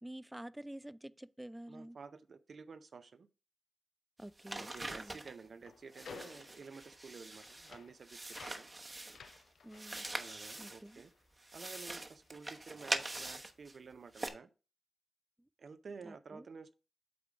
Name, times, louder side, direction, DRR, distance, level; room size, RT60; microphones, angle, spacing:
voice 1, 0.0-2.0 4.2-5.2 9.6-10.1 10.6-11.0 15.4-15.5 16.0-16.5, right 1 dB, 10° right, 0.4 m, -49 dB
voice 2, 1.7-3.3 4.5-8.7 10.1-11.1 11.5-14.5 15.6-16.7, right 5 dB, 65° right, 0.6 m, -52 dB
sound 1, 4.2-5.4 5.9-7.8 8.0-9.4 9.7-11.0 11.4-13.8 14.1-14.3, right 2 dB, 35° right, 1.0 m, -43 dB
sound 2, 4.4-11.9 12.2-13.6, left 6 dB, 80° left, 0.5 m, -57 dB
8.6 x 3.7 x 4.8 m
supercardioid pair, 45°, 0 cm